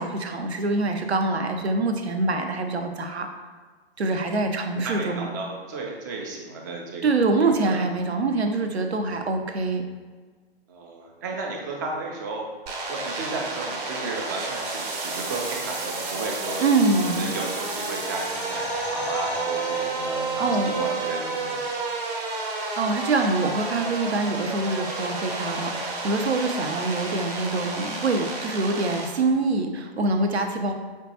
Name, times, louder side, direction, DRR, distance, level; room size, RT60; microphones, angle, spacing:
voice 1, 0.0-3.3 4.0-5.3 7.0-9.8 16.6-17.3 20.4-20.7 22.8-30.7, right 3 dB, 85° right, 5 dB, 0.5 m, -25 dB
voice 2, 4.8-7.8 10.7-12.5 12.8-16.6 17.0-21.7, right 3 dB, 20° right, 0 dB, 0.3 m, -34 dB
sound 1, 12.7-29.1, right 3 dB, 40° right, 0.8 m, -31 dB
sound 2, 16.7-21.4 21.7-21.8, left 3 dB, 85° left, 0.5 m, -37 dB
5.1 x 2.2 x 2.7 m, 1.4 s
figure-of-eight pair, 115°, 31 cm